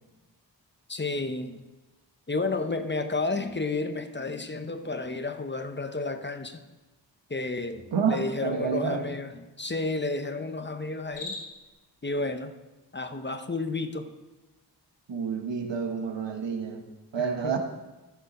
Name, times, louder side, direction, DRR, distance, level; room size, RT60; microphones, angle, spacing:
voice 1, 0.9-1.6 2.3-6.6 7.3-11.4 12.0-12.5 12.9-14.1 17.2-17.6, left 3 dB, 25° left, 8 dB, 0.7 m, -31 dB
voice 2, 7.9-9.1 15.1-16.9 17.1-17.6, right 6 dB, 90° right, 5 dB, 1.1 m, -29 dB
Cricket, 11.0-11.7, left 3 dB, 80° left, 2.6 m, -39 dB
14.0 x 6.8 x 4.2 m, 1.1 s
wide cardioid pair, 70°, 42 cm